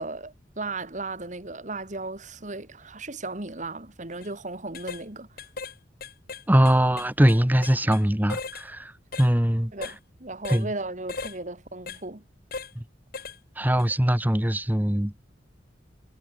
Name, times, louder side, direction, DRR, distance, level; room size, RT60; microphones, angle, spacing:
voice 1, 0.0-5.3 9.7-12.2, right 2 dB, 40° right, 2.3 m, -36 dB
sound 1, 4.1-4.3 4.7-5.0 5.4-5.7 6.0-8.0 8.3-8.7 9.1-9.3 9.8-10.0 10.4-10.7 11.1-11.4 11.9-12.0 12.5-12.7 13.1-13.4 13.8-13.9, left 4 dB, 55° left, 1.9 m, -37 dB
voice 2, 6.5-8.9 9.2-9.7 10.5-10.7 12.7-12.8 13.6-15.1, equal, 10° right, 1.1 m, -21 dB
head